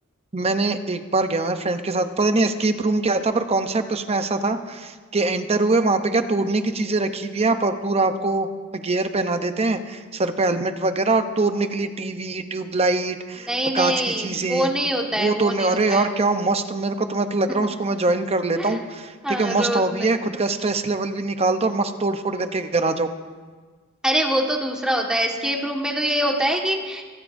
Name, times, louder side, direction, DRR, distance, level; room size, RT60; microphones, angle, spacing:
voice 1, 0.3-14.7 15.2-23.1, right 3 dB, 30° right, 8 dB, 0.8 m, -23 dB
voice 2, 13.4-16.1 18.6-18.8 19.2-20.1 24.0-27.0, equal, 5° right, 0 dB, 1.6 m, -24 dB
25.5 x 13.5 x 2.7 m, 1.5 s
head